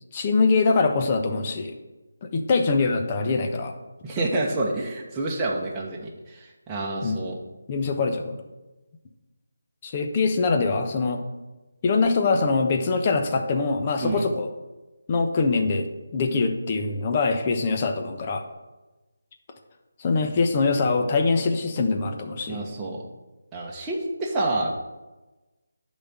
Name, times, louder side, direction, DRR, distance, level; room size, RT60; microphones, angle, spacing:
voice 1, 0.1-1.7 2.2-3.7 7.0-7.2 7.7-8.4 9.8-11.2 11.8-14.5 15.1-15.9 16.1-18.4 20.0-22.6, left 4 dB, 30° left, 5 dB, 1.0 m, -23 dB
voice 2, 4.0-7.4 14.0-14.2 22.5-23.0 23.5-24.8, right 2 dB, 15° right, -4 dB, 1.2 m, -28 dB
10.0 x 4.2 x 7.5 m, 1.1 s
figure-of-eight pair, 160°, 0 cm